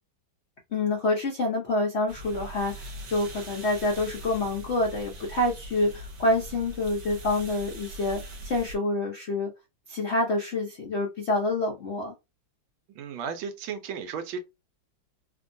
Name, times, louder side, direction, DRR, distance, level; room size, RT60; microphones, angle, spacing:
voice 1, 0.7-9.5 9.9-12.1, left 2 dB, 75° left, 0.6 m, -27 dB
sound 1, 2.1-8.8, right 1 dB, 65° right, 1.4 m, -42 dB
voice 2, 12.9-14.4, right 6 dB, 85° right, 1.5 m, -34 dB
3.4 x 2.2 x 2.6 m
omnidirectional pair, 2.2 m